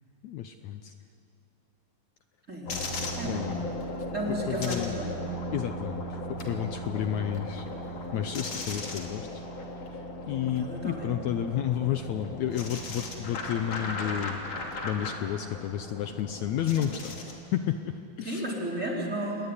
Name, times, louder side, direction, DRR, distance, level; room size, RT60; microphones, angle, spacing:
voice 1, 0.2-0.9 3.2-3.6 4.3-4.9 5.5-7.6 8.1-9.4 9.9-14.4 14.8-17.2 17.5-18.5, left 10 dB, 75° left, 8 dB, 1.7 m, -31 dB
voice 2, 2.5-3.5 4.1-5.1 10.4-11.1 16.7-16.9 18.2-19.5, right 1 dB, 20° right, -3 dB, 4.2 m, -34 dB
sound 1, 2.7-17.4, left 1 dB, 45° left, 3.6 m, -37 dB
28.0 x 21.5 x 9.7 m, 2.8 s
omnidirectional pair, 4.1 m